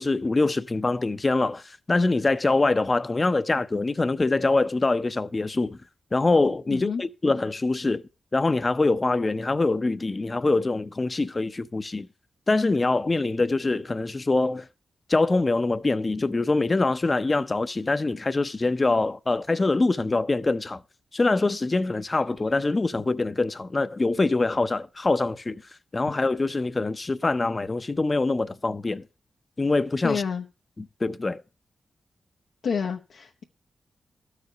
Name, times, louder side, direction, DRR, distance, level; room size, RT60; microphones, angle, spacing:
voice 1, 0.0-5.8 6.1-8.0 8.3-12.1 12.5-14.7 15.1-20.8 21.1-25.6 25.9-29.0 29.6-30.2 30.8-31.4, left 3 dB, 30° left, 0.5 m, -24 dB
voice 2, 6.7-7.0 30.0-30.4 32.6-33.4, left 6 dB, 85° left, 0.8 m, -28 dB
12.5 x 5.0 x 6.6 m
wide cardioid pair, 90°, 0 cm